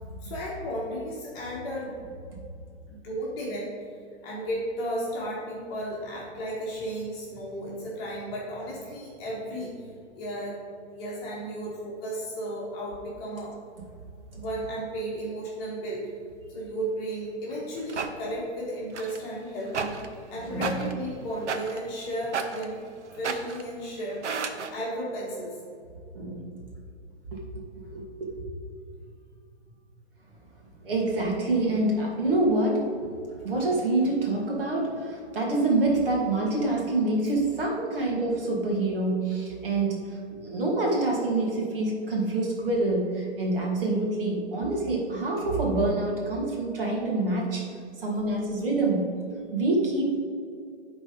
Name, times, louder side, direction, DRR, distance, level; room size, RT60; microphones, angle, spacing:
voice 1, 0.2-1.9 2.9-3.7 4.2-9.9 10.1-10.6 10.9-13.5 14.3-16.1 16.5-22.8 23.1-24.2 24.7-25.6, right 1 dB, 20° left, -5 dB, 1.5 m, -34 dB
sound 1, 17.5-18.1 18.9-19.3 19.7-20.2 20.5-21.0 21.4-22.0 22.3-22.8 23.1-23.7 24.1-24.7, right 5 dB, 80° right, 1.0 m, -33 dB
voice 2, 20.5-20.8 26.1-26.5 27.3-28.4 30.8-32.9 33.4-47.7 48.0-49.1 49.5-50.2, right 2 dB, 50° right, -2 dB, 2.2 m, -26 dB
11.0 x 4.1 x 5.1 m, 2.4 s
hypercardioid pair, 165°, 34 cm